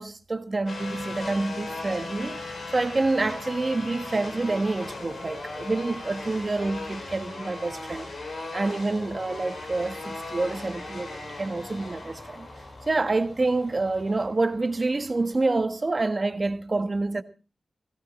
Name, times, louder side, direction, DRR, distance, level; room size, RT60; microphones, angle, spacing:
voice 1, 0.0-2.4 2.7-8.1 8.5-12.5 12.9-17.2, right 3 dB, 40° right, 1.3 m, -27 dB
Brushcutter in action, 0.7-15.5, left 3 dB, 80° left, 5.7 m, -39 dB
sound 1, 0.8-14.3, left 1 dB, 30° left, 2.3 m, -49 dB
17.0 x 16.0 x 4.2 m
wide cardioid pair, 70°, 0 cm